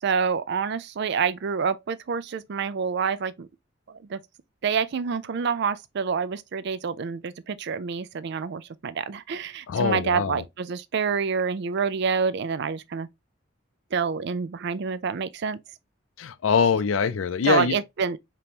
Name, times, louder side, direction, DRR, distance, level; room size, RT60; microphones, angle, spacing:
voice 1, 0.0-3.5 3.9-4.2 4.6-13.1 13.9-15.6 17.4-18.2, right 6 dB, 55° right, 0.4 m, -27 dB
voice 2, 9.7-10.4 16.2-17.8, left 6 dB, 70° left, 0.4 m, -23 dB
5.1 x 3.0 x 2.8 m
head